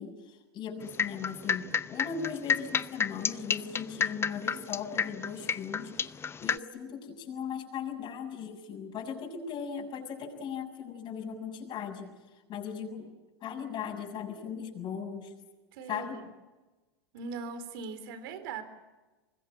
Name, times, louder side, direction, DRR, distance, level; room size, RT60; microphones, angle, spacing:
voice 1, 0.0-12.1 12.5-13.1 13.4-15.3 15.9-16.2, left 7 dB, 35° left, 1 dB, 7.0 m, -38 dB
sound 1, 0.8-6.6, left 6 dB, 20° left, 0.7 m, -30 dB
voice 2, 15.7-16.3 17.1-18.6, right 4 dB, 65° right, 11 dB, 3.8 m, -40 dB
25.0 x 21.0 x 8.8 m, 1.2 s
hypercardioid pair, 105°, 13 cm